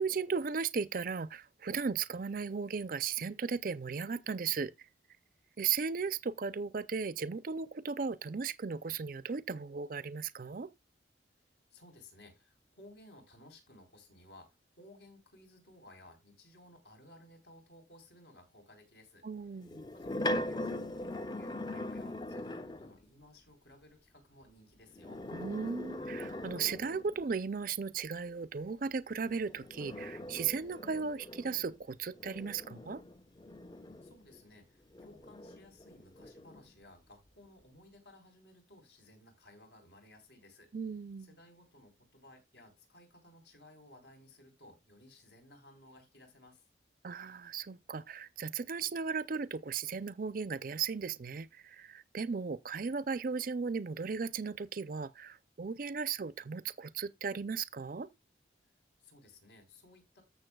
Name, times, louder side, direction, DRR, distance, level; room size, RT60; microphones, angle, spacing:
voice 1, 0.0-4.7 5.6-10.7 19.2-19.8 25.3-33.0 40.7-41.3 47.0-58.1, right 5 dB, 50° right, 0.5 m, -36 dB
voice 2, 11.7-19.3 19.9-25.2 34.0-40.7 41.2-46.6 59.0-60.2, left 1 dB, 75° left, 4.1 m, -58 dB
sound 1, 19.6-23.0 24.9-27.2 29.2-34.4 34.9-36.7, left 1 dB, 25° left, 0.6 m, -41 dB
14.5 x 6.8 x 2.3 m
head